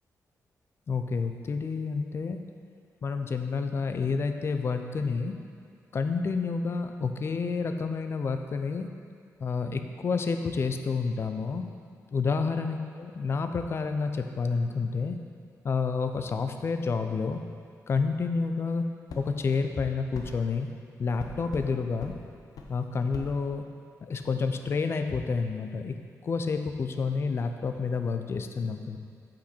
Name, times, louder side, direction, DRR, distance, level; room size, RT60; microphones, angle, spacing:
voice 1, 0.9-2.4 3.0-5.3 5.9-8.9 9.4-11.6 12.1-15.2 15.6-17.4 17.9-18.8 19.2-20.7 21.0-22.1 22.7-23.6 24.1-26.0 26.2-29.0, left 4 dB, 40° left, 7 dB, 0.5 m, -29 dB
sound 1, 19.1-19.3 20.1-20.3 21.2-21.7 22.0-22.2 22.6-22.7 23.1-23.3, left 4 dB, 80° left, 0.8 m, -39 dB
8.3 x 5.2 x 4.4 m, 2.2 s
wide cardioid pair, 135°, 6 cm